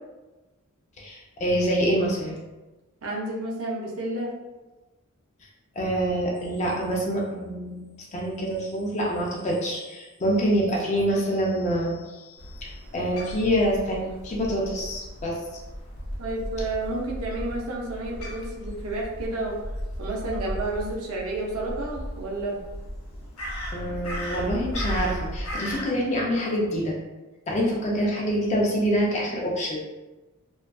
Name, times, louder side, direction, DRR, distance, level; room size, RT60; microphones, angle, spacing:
voice 1, 1.0-2.4 5.8-7.8 8.1-15.4 23.7-26.9 27.5-29.8, equal, 30° left, -3 dB, 0.3 m, -26 dB
voice 2, 3.0-4.3 16.2-19.6 20.0-22.6, right 2 dB, 70° right, -2 dB, 0.5 m, -31 dB
Crow, 12.4-25.8, equal, 70° left, 0.7 m, -35 dB
2.4 x 2.3 x 2.2 m, 1.1 s
head